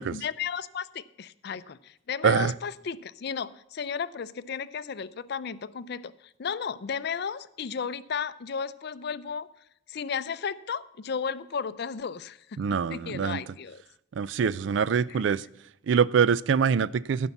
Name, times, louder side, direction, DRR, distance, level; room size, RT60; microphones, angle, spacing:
voice 1, 0.0-9.5 9.9-13.8 15.1-15.2, left 6 dB, 55° left, 16 dB, 0.5 m, -34 dB
voice 2, 12.6-13.4 14.2-15.4 15.9-17.3, right 6 dB, 65° right, 20 dB, 0.4 m, -24 dB
14.5 x 5.6 x 7.1 m, 0.80 s
head